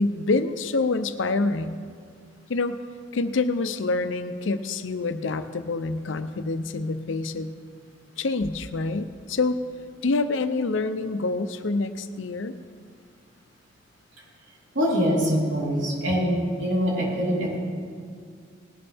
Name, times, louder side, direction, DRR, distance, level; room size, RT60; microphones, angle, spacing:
voice 1, 0.0-1.8 2.5-2.8 3.1-7.5 8.2-9.6 10.0-12.6, left 3 dB, 75° left, 10 dB, 0.6 m, -26 dB
voice 2, 14.7-17.6, equal, 75° right, -5 dB, 3.8 m, -24 dB
19.0 x 11.0 x 3.5 m, 2.1 s
head